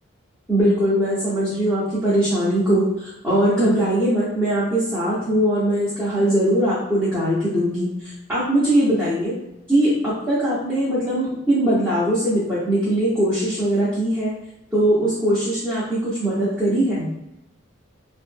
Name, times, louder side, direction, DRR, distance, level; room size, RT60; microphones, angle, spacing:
voice 1, 0.5-7.9 8.3-9.3 9.7-14.3 14.7-17.1, right 1 dB, 10° right, -11 dB, 0.7 m, -21 dB
2.4 x 2.1 x 3.2 m, 0.90 s
head